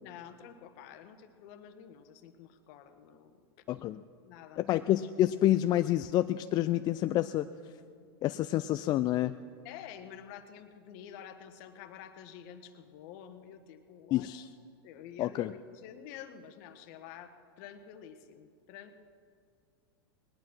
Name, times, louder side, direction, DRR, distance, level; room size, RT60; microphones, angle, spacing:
voice 1, 0.0-3.3 4.2-4.6 9.6-14.3 14.8-19.0, left 9 dB, 55° left, 9 dB, 1.3 m, -49 dB
voice 2, 3.7-4.0 4.6-7.5 8.2-9.4 14.1-14.4 15.2-15.5, left 13 dB, 35° left, 11 dB, 0.4 m, -28 dB
19.5 x 11.0 x 6.1 m, 2.3 s
hypercardioid pair, 115°, 13 cm